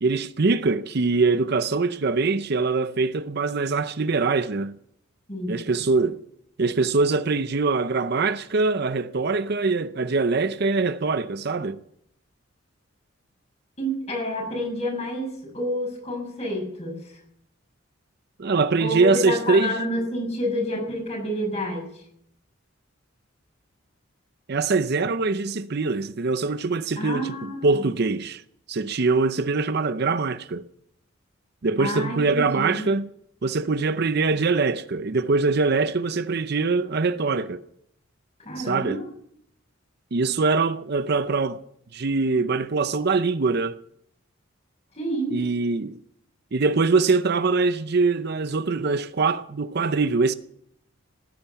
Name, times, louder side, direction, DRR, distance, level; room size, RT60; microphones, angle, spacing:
voice 1, 0.0-4.8 5.5-6.2 6.6-11.8 18.4-19.8 24.5-27.3 27.6-28.4 28.7-30.7 31.6-33.1 33.4-37.6 38.6-39.0 40.1-41.6 41.9-43.8 45.3-46.0 46.5-50.3, right 4 dB, 50° right, 0.6 m, -23 dB
voice 2, 5.3-5.6 13.8-17.2 18.8-22.0 27.0-27.9 31.8-32.9 38.4-39.0 44.9-45.4, equal, 30° left, 6.7 m, -29 dB
18.0 x 10.5 x 7.1 m
head